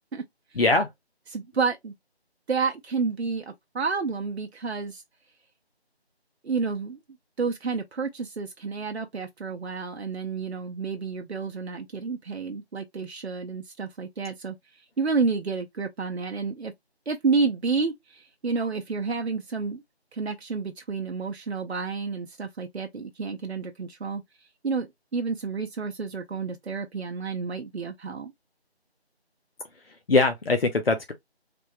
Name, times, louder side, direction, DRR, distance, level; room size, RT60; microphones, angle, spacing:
voice 1, 0.6-0.9 30.1-31.1, left 3 dB, 60° left, 0.7 m, -21 dB
voice 2, 1.3-1.9 2.5-5.0 6.4-7.0 7.4-16.7 17.1-19.8 20.1-24.2 24.6-24.9 25.1-28.3, right 4 dB, 75° right, 0.6 m, -30 dB
3.4 x 2.1 x 3.0 m
figure-of-eight pair, 170°, 33 cm